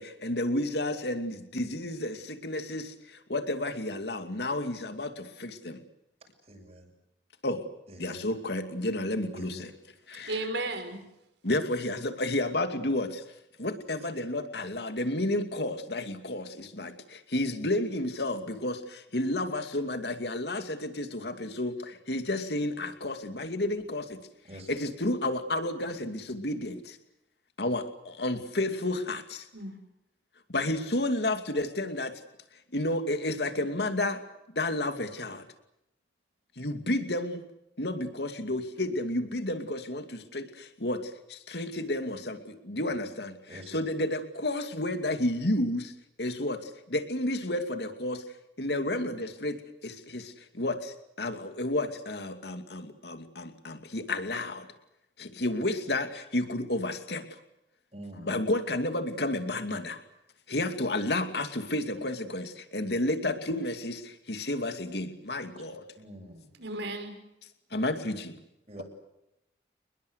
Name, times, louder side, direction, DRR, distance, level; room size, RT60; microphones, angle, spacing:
voice 1, 0.0-5.8 7.4-7.7 8.0-9.7 10.1-10.4 11.4-13.2 13.6-16.9 17.3-24.2 24.7-27.0 27.6-29.5 30.5-32.1 32.7-34.2 34.5-35.5 36.6-37.4 37.8-45.9 46.2-48.2 48.6-54.7 55.2-57.4 58.2-60.0 60.5-65.8 67.7-68.4, left 1 dB, 65° left, 8 dB, 2.6 m, -31 dB
voice 2, 6.2-6.9 7.9-8.2 9.3-9.6 24.4-24.8 43.5-43.8 57.9-58.4 66.0-66.5 68.7-68.8, right 1 dB, 35° right, 1 dB, 6.9 m, -46 dB
voice 3, 10.3-11.0 29.5-29.8 66.6-67.2, right 2 dB, 75° right, 7 dB, 5.4 m, -34 dB
29.0 x 21.0 x 8.2 m, 0.87 s
head